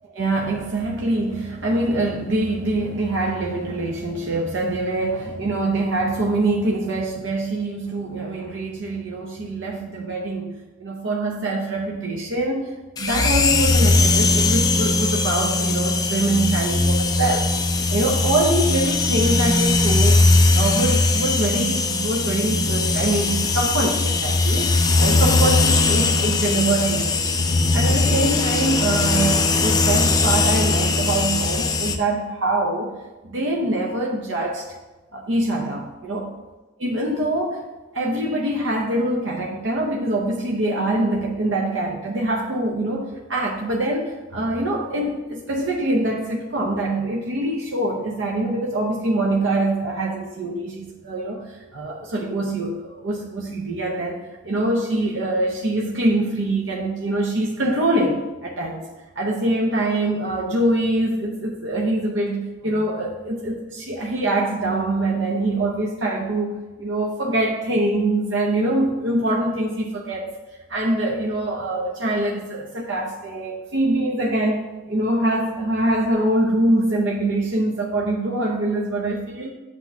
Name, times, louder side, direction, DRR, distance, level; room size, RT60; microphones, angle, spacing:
voice 1, 0.0-17.5 17.9-20.2 20.5-27.3 27.7-32.9 33.2-34.6 35.1-36.3 36.8-37.6 37.9-58.8 59.2-70.3 70.7-79.5, right 1 dB, 80° right, -1 dB, 0.8 m, -24 dB
sound 1, 13.0-32.0, left 3 dB, 20° left, 0.4 m, -19 dB
8.2 x 2.9 x 5.8 m, 1.2 s
head